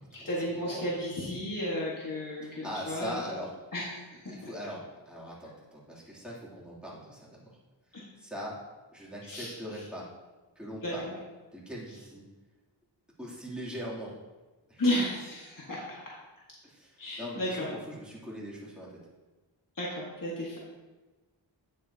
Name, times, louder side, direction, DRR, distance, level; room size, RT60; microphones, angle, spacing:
voice 1, 0.1-3.2 3.7-4.0 4.2-4.3 7.9-8.0 9.3-9.5 10.8-11.1 14.8-15.9 17.0-17.7 19.8-20.6, left 1 dB, 45° left, -5 dB, 1.7 m, -33 dB
voice 2, 0.6-1.0 2.4-3.5 4.3-7.4 8.2-8.5 8.9-10.0 10.6-11.0 11.5-12.2 13.2-14.1 14.7-14.9 16.6-18.9, equal, ahead, -7 dB, 2.9 m, -41 dB
9.7 x 7.5 x 2.8 m, 1.2 s
wide cardioid pair, 60°, 45 cm